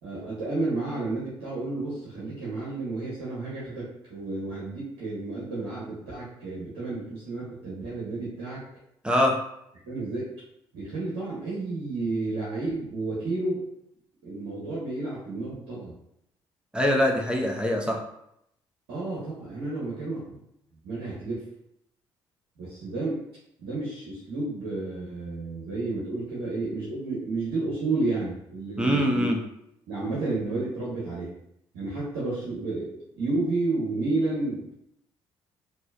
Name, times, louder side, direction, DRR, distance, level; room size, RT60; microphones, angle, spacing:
voice 1, 0.0-8.6 9.8-10.3 10.7-13.6 14.2-15.9 18.9-20.4 20.8-21.4 22.6-23.2 23.6-29.3 29.9-31.3 31.7-34.7, right 2 dB, 70° right, -7 dB, 1.1 m, -31 dB
voice 2, 9.0-9.4 16.7-18.0 28.8-29.4, equal, 5° right, 0 dB, 0.8 m, -23 dB
4.3 x 2.8 x 2.3 m, 0.78 s
figure-of-eight pair, 45°, 13 cm